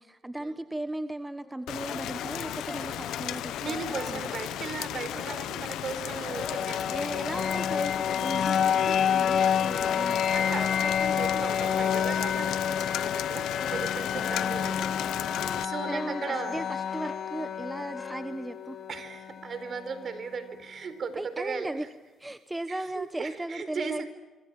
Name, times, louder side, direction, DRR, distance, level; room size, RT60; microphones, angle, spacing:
voice 1, 0.0-3.8 4.1-4.3 6.9-10.4 14.5-14.7 15.9-18.8 21.1-21.9 22.2-24.1, right 1 dB, 10° right, 11 dB, 1.2 m, -37 dB
Brass instrument, 1.4-5.8 6.1-18.2, left 2 dB, 20° left, 5.1 m, -43 dB
Rain, 1.7-15.6, left 12 dB, 85° left, 0.8 m, -35 dB
voice 2, 3.5-7.1 10.3-14.9 15.2-16.6 18.9-21.9 22.7-24.1, right 5 dB, 50° right, 11 dB, 4.2 m, -37 dB
sound 1, 6.3-20.2, left 8 dB, 60° left, 1.0 m, -29 dB
26.5 x 25.0 x 7.6 m, 1.2 s
cardioid pair, 90°, 0 cm